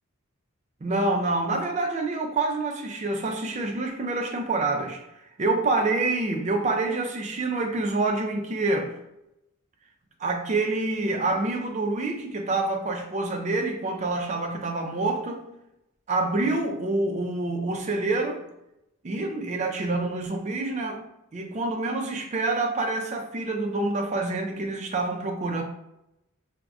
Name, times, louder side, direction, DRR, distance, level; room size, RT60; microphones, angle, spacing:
voice 1, 0.8-5.0 5.4-8.9 10.2-15.4 16.1-18.4 19.0-21.0 21.3-25.6, right 2 dB, 30° right, 0.4 m, -27 dB
2.4 x 2.1 x 3.4 m
head